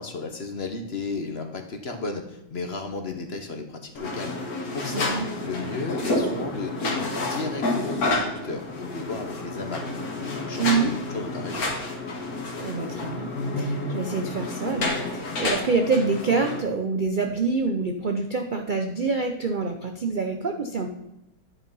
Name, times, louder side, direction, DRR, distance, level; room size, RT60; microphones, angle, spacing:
voice 1, 0.0-5.0 5.4-9.8 10.1-11.7, left 3 dB, 45° left, 5 dB, 1.1 m, -34 dB
sound 1, 3.9-16.6, left 2 dB, 60° left, 2.0 m, -29 dB
voice 2, 4.9-5.3 10.6-11.0 12.6-13.3 13.6-20.9, right 4 dB, 60° right, 5 dB, 0.5 m, -26 dB
10.0 x 5.7 x 5.4 m, 0.90 s
omnidirectional pair, 1.8 m